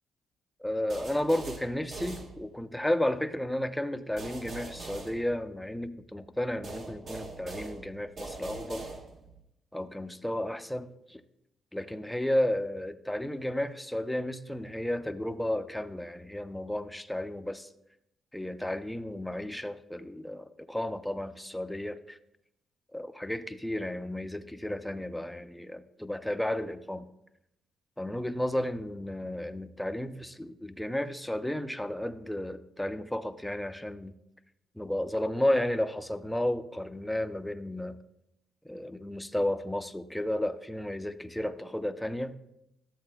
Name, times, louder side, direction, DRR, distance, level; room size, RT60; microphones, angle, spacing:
voice 1, 0.6-8.9 9.7-11.2 11.7-17.7 18.3-22.2 22.9-27.1 28.0-34.1 34.8-38.0 38.6-42.4, left 1 dB, 5° left, 10 dB, 0.5 m, -33 dB
sound 1, 0.9-2.8 4.2-5.9 6.6-9.4, right 3 dB, 55° right, 1.3 m, -42 dB
12.5 x 7.8 x 2.2 m, 0.81 s
cardioid pair, 90°, 0 cm